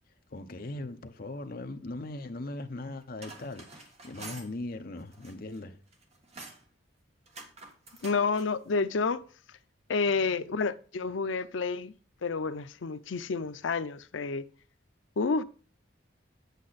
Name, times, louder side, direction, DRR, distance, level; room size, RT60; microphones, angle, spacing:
voice 1, 0.3-5.8 10.2-10.5, left 2 dB, 45° left, 0.8 m, -39 dB
sound 1, 3.0-4.5 5.0-5.6 5.9-6.7 7.3-8.5, right 2 dB, 35° right, 1.5 m, -47 dB
voice 2, 8.0-9.2 9.9-11.9 12.2-14.5 15.2-15.4, left 4 dB, 75° left, 0.5 m, -29 dB
8.6 x 8.2 x 4.1 m
head